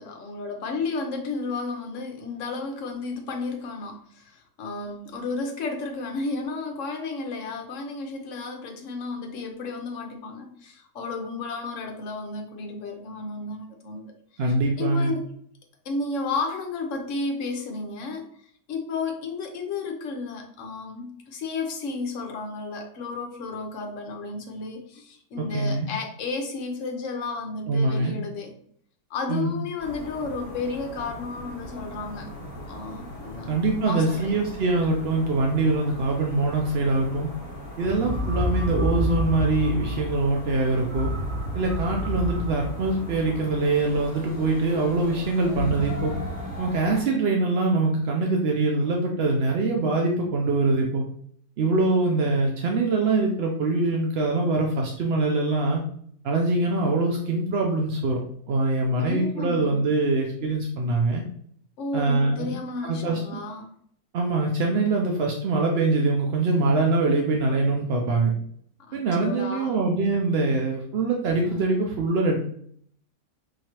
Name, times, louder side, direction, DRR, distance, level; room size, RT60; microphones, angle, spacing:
voice 1, 0.0-14.0 14.4-15.2 15.8-18.3 18.7-28.5 29.1-32.3 32.7-33.6 33.9-34.4 59.0-59.9 61.8-63.7 68.9-69.8, left 3 dB, 60° left, 3 dB, 1.1 m, -32 dB
voice 2, 14.4-15.1 25.4-25.9 27.7-28.2 29.3-29.6 33.4-37.3 37.8-41.1 41.5-46.1 46.6-51.0 51.6-55.8 56.2-58.2 58.5-61.2 61.9-62.5 62.8-63.2 64.1-68.3 68.9-72.4, right 3 dB, 65° right, 0 dB, 0.6 m, -23 dB
sound 1, 29.8-47.0, equal, 15° left, 1.5 m, -40 dB
sound 2, 37.8-44.3 45.5-46.6, left 1 dB, 40° right, 2.2 m, -30 dB
4.7 x 3.1 x 2.9 m, 0.63 s
omnidirectional pair, 1.6 m